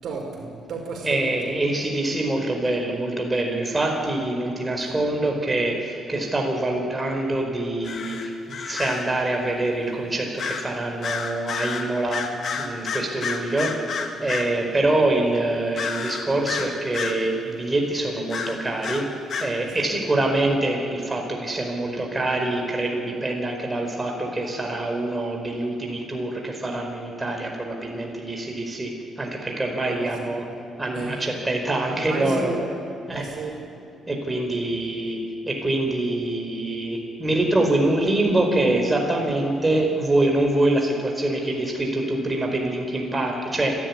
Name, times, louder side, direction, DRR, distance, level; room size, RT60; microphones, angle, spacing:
voice 1, 0.0-1.5 19.5-19.9 29.8-30.4 30.9-31.2 31.9-32.8 33.1-33.6, right 3 dB, 65° right, 1 dB, 5.0 m, -33 dB
voice 2, 1.0-12.2 12.6-19.0 19.4-30.5 30.8-32.5 33.1-33.3 34.1-35.2 35.5-43.7, right 2 dB, 20° right, 1 dB, 4.8 m, -25 dB
sound 1, 7.8-9.1 10.4-10.7 11.0-14.5 15.8-17.2 18.3-19.5, left 5 dB, 60° left, 2.2 m, -30 dB
29.0 x 12.0 x 9.8 m, 2.7 s
cardioid pair, 90°, 0 cm